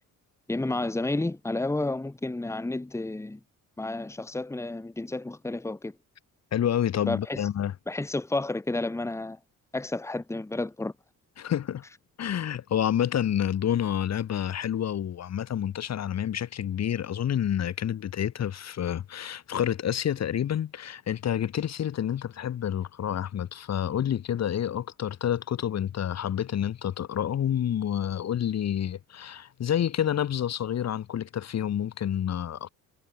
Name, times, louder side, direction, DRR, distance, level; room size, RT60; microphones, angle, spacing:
voice 1, 0.5-3.4 3.8-5.9 7.1-7.4 7.9-9.4 9.7-10.9, left 2 dB, 10° left, 2.0 m, -31 dB
voice 2, 6.5-7.7 11.4-11.8 12.2-32.7, left 10 dB, 55° left, 2.3 m, -28 dB
wide cardioid pair, 170°, 32 cm